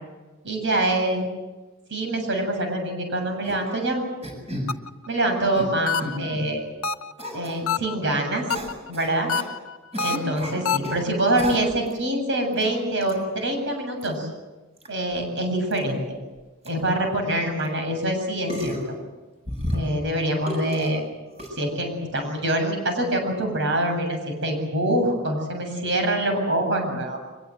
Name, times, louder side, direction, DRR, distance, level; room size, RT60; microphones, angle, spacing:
voice 1, 0.4-1.3 1.9-4.0 5.1-6.6 7.3-8.4 8.9-9.3 10.0-14.3 14.9-16.2 16.6-18.7 19.7-21.0 21.5-27.2, right 1 dB, 60° right, 4 dB, 7.8 m, -25 dB
sound 1, 3.4-3.7 4.2-4.7 5.3-5.7 6.0-6.4 7.2-7.6 8.5-9.5 9.9-11.0 11.4-11.9 12.5-12.7 13.0-13.1 14.0-14.1 14.8-14.9 15.1-15.2 15.7-15.8 16.4-16.5 16.6-16.7 17.6-17.7 18.5-18.9 19.4-20.1 20.5-20.9 21.4-21.5, equal, 30° right, 7.7 m, -32 dB
sound 2, 4.7-5.1 5.9-6.4 6.8-7.3 7.7-8.1 8.5-8.9 9.3-10.9, left 6 dB, 85° left, 0.9 m, -27 dB
24.5 x 22.5 x 8.0 m, 1.2 s
head